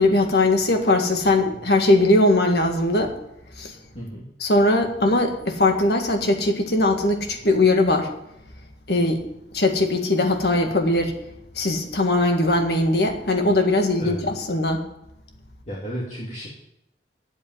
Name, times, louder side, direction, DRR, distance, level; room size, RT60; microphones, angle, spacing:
voice 1, 0.0-3.1 3.6-3.7 4.4-8.1 8.9-9.2 9.5-11.1 11.6-14.8, left 2 dB, 65° left, 4 dB, 1.9 m, -20 dB
voice 2, 15.7-16.5, equal, 40° left, -5 dB, 2.4 m, -32 dB
8.8 x 8.3 x 9.3 m, 0.82 s
head